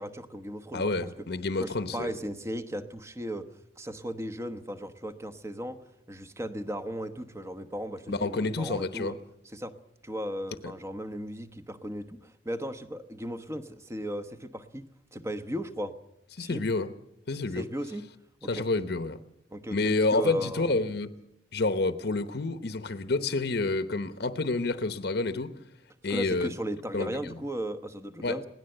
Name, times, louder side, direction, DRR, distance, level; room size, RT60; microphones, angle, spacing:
voice 1, 0.0-1.3 1.6-3.5 3.8-5.8 6.1-9.2 9.5-9.8 10.0-15.9 16.4-16.6 17.5-18.1 18.4-18.7 19.5-20.7 26.1-28.5, equal, 15° right, 1.1 m, -36 dB
voice 2, 0.7-2.1 8.1-9.2 10.6-10.7 16.4-16.9 17.3-17.7 18.5-19.2 19.7-21.1 21.5-25.5 26.0-26.5 26.9-27.4 28.2-28.4, left 3 dB, 65° left, 0.9 m, -29 dB
21.5 x 17.0 x 7.9 m
head